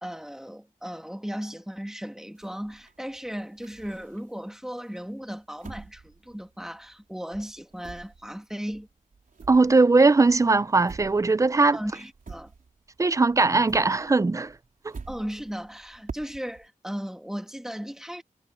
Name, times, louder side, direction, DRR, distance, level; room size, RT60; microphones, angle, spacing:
voice 1, 0.0-8.9 11.7-12.5 15.1-18.2, equal, 5° right, 1.9 m, -36 dB
sound 1, 2.4-4.5 5.0-7.1 7.3-13.0 13.3-16.7, right 4 dB, 75° right, 4.2 m, -46 dB
voice 2, 9.5-11.8 13.0-14.5 14.8-14.9, right 3 dB, 20° right, 0.4 m, -20 dB
wide cardioid pair, 105°, 14 cm